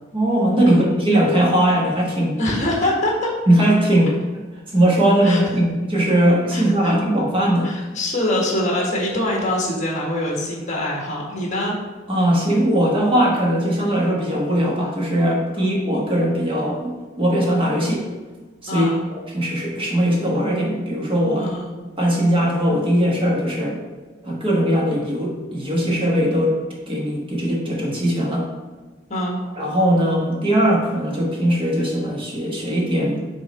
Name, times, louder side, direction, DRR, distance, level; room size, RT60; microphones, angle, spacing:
voice 1, 0.1-2.4 3.5-4.2 4.7-7.7 12.1-18.0 18.6-18.9 19.1-21.5 22.0-23.8 24.2-26.6 26.9-28.5 29.6-33.2, right 1 dB, 30° right, -3 dB, 1.3 m, -19 dB
voice 2, 2.4-3.3 5.2-5.4 6.5-6.9 7.6-11.7 15.5-15.6 18.7-19.0 21.4-21.8 29.1-29.4, left 1 dB, 40° left, -2 dB, 1.6 m, -24 dB
6.1 x 3.7 x 4.3 m, 1.3 s
head